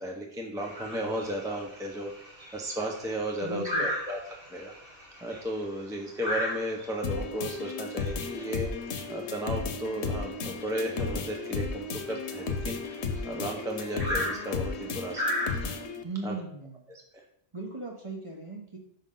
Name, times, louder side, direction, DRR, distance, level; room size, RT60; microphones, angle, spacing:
voice 1, 0.0-2.1 2.5-4.2 4.5-4.7 5.2-8.7 9.1-12.8 13.2-15.7 16.2-16.3 16.9-17.0, right 1 dB, 5° right, 0 dB, 0.6 m, -34 dB
sound 1, 0.6-15.8, left 1 dB, 55° right, 2.7 m, -37 dB
voice 2, 3.4-3.9 16.0-16.9 17.5-18.8, right 3 dB, 30° right, 0 dB, 1.1 m, -37 dB
sound 2, 7.0-16.0, left 4 dB, 90° left, 1.0 m, -34 dB
5.6 x 5.3 x 3.8 m, 0.70 s
omnidirectional pair, 1.1 m